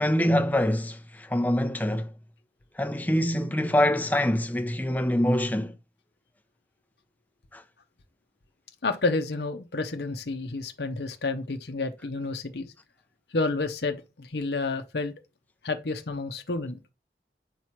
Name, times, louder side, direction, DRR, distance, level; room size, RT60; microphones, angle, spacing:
voice 1, 0.0-2.1 2.8-5.7 7.5-7.6, left 1 dB, 10° left, 0.6 m, -25 dB
voice 2, 8.8-12.7 13.3-15.1 15.6-16.8, left 3 dB, 70° left, 0.8 m, -30 dB
9.0 x 3.1 x 5.8 m
head